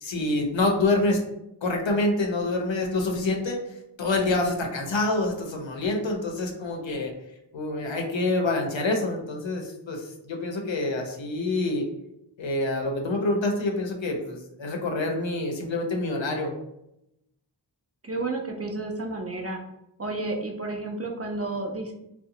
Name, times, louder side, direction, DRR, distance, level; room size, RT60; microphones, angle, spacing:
voice 1, 0.0-1.2 1.6-3.6 4.0-7.1 7.5-11.9 12.4-16.5, left 2 dB, 80° left, 2 dB, 0.6 m, -26 dB
voice 2, 18.0-19.6 20.0-21.9, right 2 dB, 35° right, 1 dB, 0.4 m, -31 dB
2.7 x 2.1 x 2.7 m, 0.83 s
wide cardioid pair, 55°, 45 cm